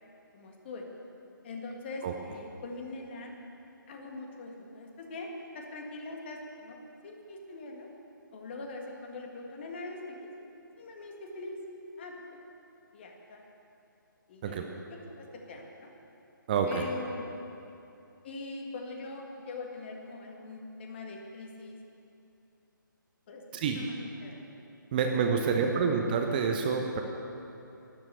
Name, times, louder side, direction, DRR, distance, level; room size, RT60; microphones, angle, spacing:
voice 1, 0.3-0.9 1.4-3.3 3.9-5.3 5.5-7.9 8.3-10.3 10.8-11.6 12.0-12.1 12.9-13.4 14.3-15.9 16.6-17.2 18.2-21.8 23.3-24.4 24.9-25.0 25.3-25.8, left 3 dB, 30° left, 1 dB, 1.9 m, -42 dB
voice 2, 16.5-16.8 23.5-23.8 24.9-27.0, right 6 dB, 25° right, 3 dB, 0.8 m, -27 dB
13.0 x 10.5 x 8.1 m, 2.8 s
figure-of-eight pair, 140°, 11 cm